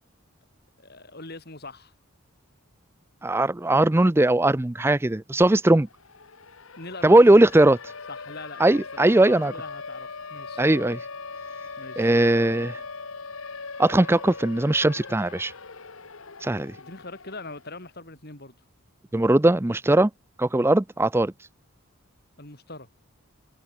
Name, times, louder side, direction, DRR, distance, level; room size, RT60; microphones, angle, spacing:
voice 1, 0.8-1.9 6.8-7.5 8.1-10.6 11.8-12.5 16.7-18.6 22.4-22.9, left 2 dB, 45° left, 3.3 m, -42 dB
voice 2, 3.2-5.9 7.0-7.8 8.6-9.5 10.6-11.1 12.0-12.7 13.8-15.5 16.4-16.8 19.1-20.1 20.4-21.3, right 1 dB, 10° right, 0.4 m, -19 dB
Siren, 5.8-17.9, left 4 dB, 65° left, 1.4 m, -40 dB
head